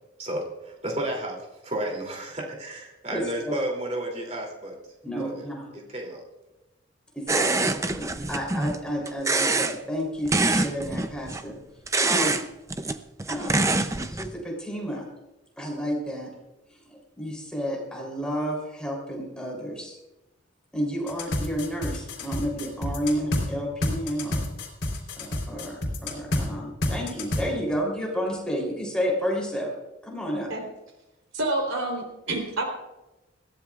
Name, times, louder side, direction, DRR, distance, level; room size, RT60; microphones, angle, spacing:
voice 1, 0.2-4.8 5.2-5.4 5.7-6.2, right 1 dB, 30° right, 0 dB, 2.8 m, -32 dB
voice 2, 3.1-3.5 5.0-5.7 7.1-11.6 12.0-12.4 13.3-13.7 14.1-15.1 15.6-16.3 16.9-19.9 20.7-24.4 25.2-29.7 30.0-30.5, equal, 5° left, -2 dB, 3.3 m, -31 dB
sound 1, 7.3-8.8 9.1-9.8 10.3-11.4 11.9-12.4 12.7-14.3, right 3 dB, 15° right, 0.5 m, -25 dB
sound 2, 21.1-23.4 23.8-26.4 26.8-27.4, left 1 dB, 60° left, 3.7 m, -28 dB
voice 3, 31.3-32.6, right 2 dB, 90° right, 2 dB, 3.5 m, -28 dB
21.0 x 15.5 x 2.4 m, 1.0 s
head